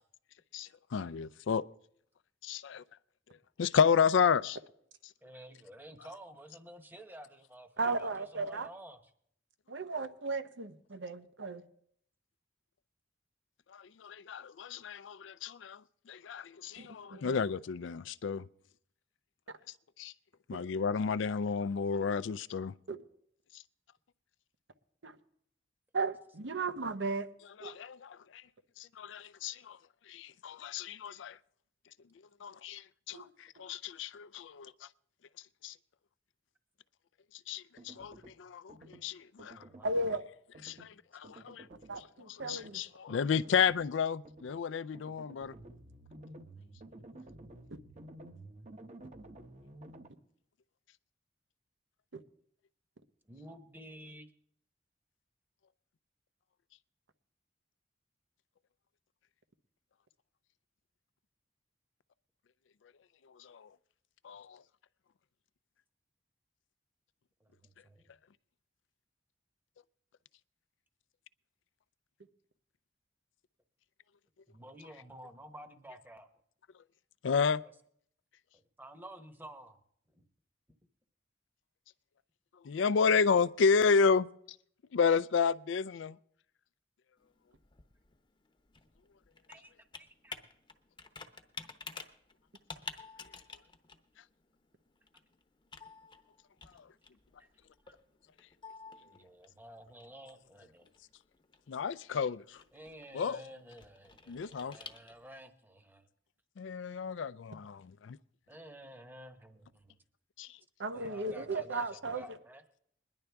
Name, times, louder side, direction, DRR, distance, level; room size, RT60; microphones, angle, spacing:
voice 1, 0.5-1.6 2.4-2.8 3.6-4.6 13.7-15.8 16.1-18.5 20.0-20.1 20.5-22.7 27.6-28.4 28.8-29.8 30.1-31.4 32.4-34.7 35.6-35.7 37.5-39.6 40.6-41.7 42.3-45.5 63.4-63.7 64.2-64.6 77.2-77.6 82.6-84.3 84.9-86.2 101.7-102.6 103.1-103.4 104.3-104.8 106.6-108.2 110.4-110.6, left 6 dB, 90° left, 0.4 m, -31 dB
voice 2, 5.2-9.0 33.1-33.2 39.6-40.2 53.2-54.3 67.4-68.1 74.5-76.3 78.5-79.8 80.1-80.2 80.7-80.8 89.5-90.4 97.4-97.5 97.8-97.9 99.0-100.9 102.7-106.1 108.5-110.0 110.9-112.6, right 1 dB, 10° right, 1.0 m, -52 dB
voice 3, 7.8-8.7 9.7-11.6 16.8-17.4 20.5-20.6 22.9-23.0 25.0-25.2 25.9-27.3 27.6-27.7 33.1-33.3 39.8-40.2 41.9-42.8 52.1-52.2 110.8-112.2, right 3 dB, 85° right, 0.9 m, -35 dB
sound 1, 37.8-38.4 38.7-39.0 39.4-40.2 40.5-40.9 41.2-42.0 42.4-42.7 43.1-43.9 44.2-44.6 44.9-50.1, right 1 dB, 40° right, 0.9 m, -52 dB
Computer keyboard, 87.2-105.5, left 4 dB, 25° left, 0.9 m, -52 dB
21.0 x 11.0 x 3.4 m
head